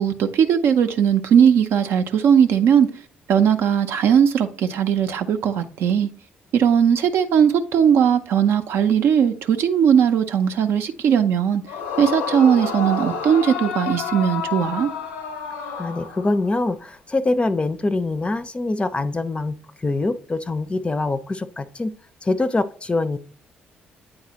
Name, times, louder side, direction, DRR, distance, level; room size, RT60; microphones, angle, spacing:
voice 1, 0.0-2.9 3.3-6.1 6.5-11.6 12.0-14.9, right 8 dB, 55° right, 0.5 m, -18 dB
Yell / Screaming, 11.7-16.6, left 6 dB, 70° left, 0.6 m, -29 dB
voice 2, 15.8-21.9 22.2-23.2, left 2 dB, 25° left, 0.5 m, -24 dB
8.7 x 3.9 x 2.9 m
figure-of-eight pair, 45°, 5 cm